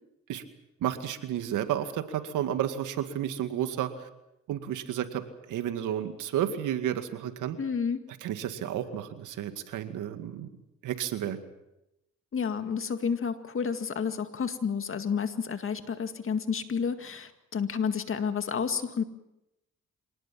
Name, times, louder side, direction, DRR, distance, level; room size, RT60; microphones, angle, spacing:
voice 1, 0.8-4.1 4.5-5.2 5.5-7.6 8.2-10.5 10.8-11.4, right 10 dB, 85° right, 9 dB, 2.2 m, -31 dB
voice 2, 7.6-8.0 12.3-19.0, left 6 dB, 45° left, 9 dB, 2.1 m, -30 dB
25.5 x 19.0 x 7.5 m, 0.89 s
cardioid pair, 90°, 30 cm